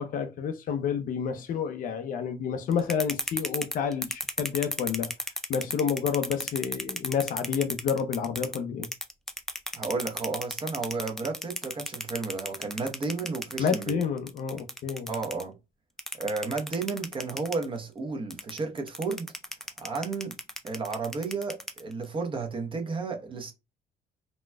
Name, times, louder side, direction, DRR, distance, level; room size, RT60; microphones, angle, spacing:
voice 1, 0.0-5.1 5.5-8.9 13.6-15.1, left 7 dB, 55° left, 0.5 m, -29 dB
sound 1, 2.7-8.6 8.8-15.4 16.0-17.7 18.3-22.0, left 1 dB, ahead, 0.4 m, -34 dB
voice 2, 9.7-14.0 15.1-15.6 16.1-19.3 19.8-20.3 20.6-23.5, right 4 dB, 30° right, 0.8 m, -32 dB
4.0 x 2.2 x 2.2 m
cardioid pair, 110°, 17 cm